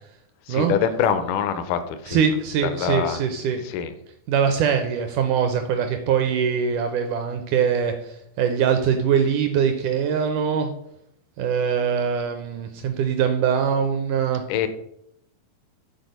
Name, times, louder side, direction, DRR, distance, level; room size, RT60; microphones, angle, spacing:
voice 1, 0.5-2.2 2.6-3.2 3.6-3.9 14.5-14.7, left 8 dB, 80° left, 11 dB, 1.9 m, -24 dB
voice 2, 2.1-3.6 4.3-10.7 11.4-14.4, right 7 dB, 80° right, 6 dB, 1.8 m, -22 dB
8.1 x 4.1 x 5.2 m, 0.74 s
omnidirectional pair, 4.2 m